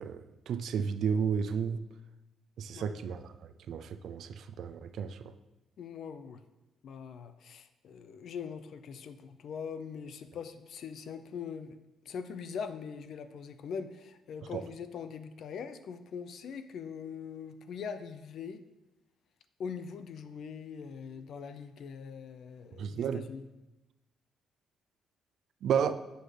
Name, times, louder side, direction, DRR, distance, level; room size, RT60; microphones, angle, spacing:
voice 1, 0.0-1.8 2.6-5.3 14.5-14.6 22.8-23.3 25.6-25.9, right 7 dB, 70° right, 11 dB, 0.4 m, -32 dB
voice 2, 5.8-6.4 6.8-11.8 12.1-18.6 19.6-23.5, left 6 dB, 65° left, 11 dB, 0.5 m, -42 dB
7.7 x 6.5 x 3.3 m, 1.0 s
cardioid pair, 90°, 0 cm